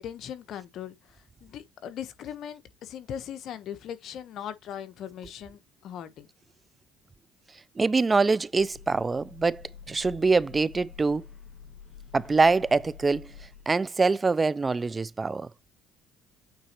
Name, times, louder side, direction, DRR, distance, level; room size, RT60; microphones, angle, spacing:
voice 1, 0.0-6.3, left 9 dB, 65° left, 1.2 m, -39 dB
voice 2, 7.8-11.2 12.1-13.3 13.7-15.5, right 4 dB, 25° right, 0.4 m, -24 dB
sound 1, 8.6-13.9, left 7 dB, 45° left, 2.0 m, -48 dB
8.8 x 4.1 x 3.1 m
cardioid pair, 100°, 0 cm